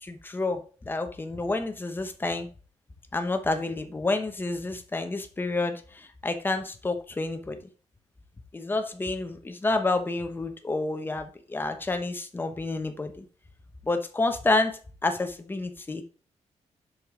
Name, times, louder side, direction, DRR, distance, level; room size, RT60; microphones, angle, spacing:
voice 1, 0.0-2.5 3.1-7.6 8.5-13.2 13.8-16.0, left 2 dB, 15° left, 7 dB, 0.9 m, -29 dB
7.6 x 6.6 x 3.7 m, 0.38 s
wide cardioid pair, 175°, 12 cm